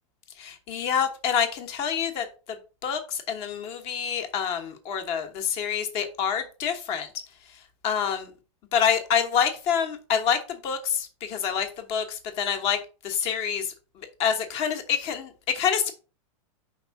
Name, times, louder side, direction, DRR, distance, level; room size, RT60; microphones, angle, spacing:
voice 1, 0.4-2.2 2.8-7.1 7.8-8.3 8.7-12.8 13.0-13.7 14.2-15.9, left 8 dB, 35° left, 1.2 m, -27 dB
5.3 x 3.6 x 5.7 m
supercardioid pair, 160°, 17 cm